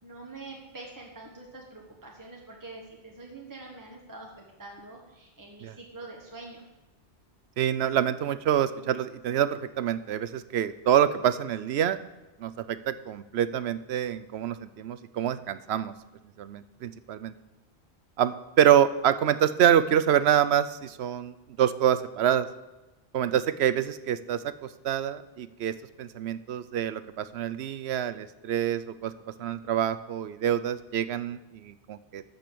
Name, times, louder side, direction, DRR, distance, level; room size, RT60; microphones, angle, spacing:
voice 1, 0.0-6.6, right 2 dB, 20° right, -1 dB, 1.4 m, -45 dB
voice 2, 7.6-12.0 12.4-15.9 16.4-17.3 18.2-22.5 23.1-29.1 29.4-32.3, right 10 dB, 75° right, 14 dB, 0.9 m, -26 dB
13.5 x 5.3 x 6.9 m, 1.1 s
omnidirectional pair, 1.1 m